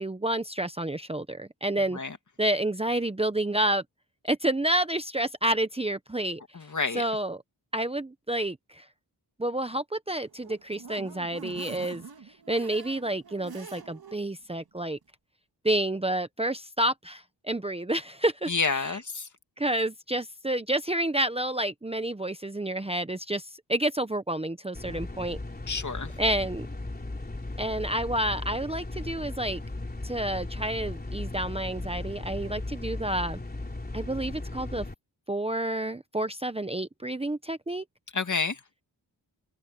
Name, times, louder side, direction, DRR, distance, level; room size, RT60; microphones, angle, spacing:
voice 1, 0.0-2.0 2.4-3.8 4.2-6.4 6.9-7.4 7.7-8.8 9.4-12.0 12.5-15.0 15.6-19.0 19.6-25.4 26.2-26.7 27.6-29.6 30.0-33.4 33.9-34.8 35.3-37.8, right 1 dB, 15° right, 1.0 m, -29 dB
voice 2, 6.5-7.0 18.5-19.3 24.9-25.0 25.7-26.1 38.1-38.6, left 4 dB, 40° left, 2.4 m, -29 dB
sound 1, 10.2-14.2 14.6-14.7 15.0-15.1, right 5 dB, 55° right, 2.6 m, -45 dB
sound 2, 24.7-34.9, left 2 dB, 20° left, 3.6 m, -37 dB
open air
cardioid pair, 80°, 43 cm